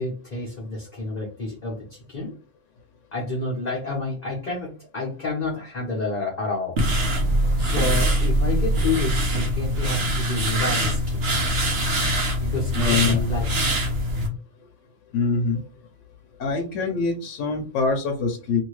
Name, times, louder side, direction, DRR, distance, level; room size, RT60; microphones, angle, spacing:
voice 1, 0.0-2.3 3.1-6.8 7.6-11.3 12.4-13.5, left 3 dB, 40° left, -4 dB, 0.9 m, -29 dB
sound 1, 6.8-14.3, right 1 dB, 60° right, 1.0 m, -23 dB
voice 2, 12.7-13.2 15.1-15.6 16.4-18.6, left 4 dB, 80° left, 3 dB, 1.0 m, -24 dB
2.7 x 2.7 x 3.1 m, 0.36 s
omnidirectional pair, 1.3 m